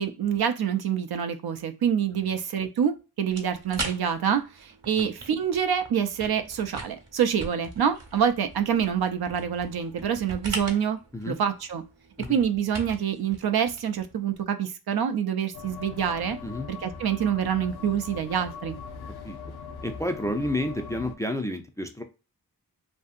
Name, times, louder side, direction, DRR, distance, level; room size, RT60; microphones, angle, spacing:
voice 1, 0.0-11.0 11.3-11.8 12.3-16.4 16.7-18.8, right 8 dB, 75° right, 8 dB, 0.5 m, -26 dB
sound 1, 3.3-14.4, right 2 dB, 45° right, 0.9 m, -41 dB
sound 2, 15.5-21.2, left 6 dB, 85° left, 0.5 m, -40 dB
voice 2, 19.8-22.0, left 1 dB, 10° left, 5 dB, 0.3 m, -30 dB
2.6 x 2.6 x 2.4 m, 0.31 s
wide cardioid pair, 90°, 37 cm